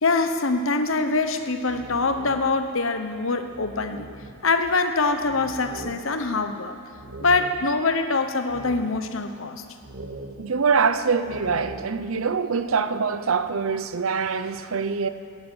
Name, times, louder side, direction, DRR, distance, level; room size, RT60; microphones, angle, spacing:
voice 1, 0.0-4.1 4.4-6.8 7.2-9.6, left 3 dB, 70° left, 1.1 m, -24 dB
sound 1, 1.4-2.8 3.1-3.2 3.5-8.0 8.5-9.3 9.8-12.1, right 2 dB, 60° right, 1.2 m, -42 dB
voice 2, 10.4-15.1, right 5 dB, 75° right, 0.7 m, -24 dB
13.5 x 11.0 x 8.8 m
head